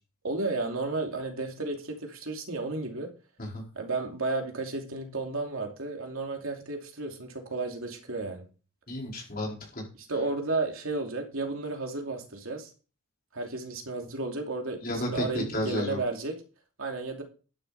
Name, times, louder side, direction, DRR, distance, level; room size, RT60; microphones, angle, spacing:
voice 1, 0.2-3.1 3.8-8.5 10.1-12.7 13.3-14.8 15.1-16.3 16.8-17.2, right 3 dB, 70° right, 2 dB, 2.8 m, -33 dB
voice 2, 8.9-9.9 14.8-16.0, left 1 dB, 40° left, -1 dB, 4.5 m, -32 dB
11.5 x 10.0 x 4.2 m, 0.36 s
head